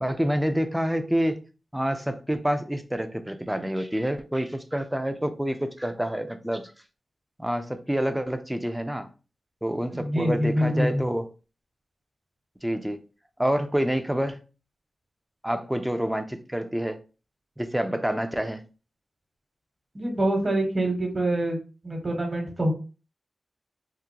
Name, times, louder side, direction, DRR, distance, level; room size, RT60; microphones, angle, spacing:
voice 1, 0.0-1.4 1.7-6.7 7.4-9.1 9.6-11.3 12.6-13.0 13.4-14.4 15.4-17.0 17.6-18.6, equal, 5° right, 0.5 m, -27 dB
voice 2, 9.9-11.0 19.9-21.6 21.8-22.7, right 1 dB, 40° right, 1.2 m, -25 dB
3.7 x 2.6 x 2.9 m
wide cardioid pair, 80°, 0 cm